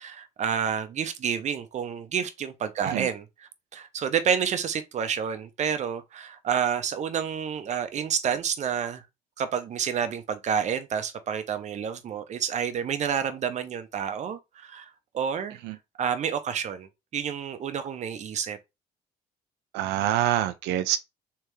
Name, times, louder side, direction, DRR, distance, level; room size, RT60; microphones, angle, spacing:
voice 1, 0.0-3.2 3.7-9.0 9.4-15.6 16.0-18.6, right 7 dB, 45° right, 0.7 m, -29 dB
voice 2, 19.7-21.0, right 12 dB, 85° right, 0.4 m, -26 dB
3.3 x 3.3 x 3.1 m
cardioid pair, 110°, 17 cm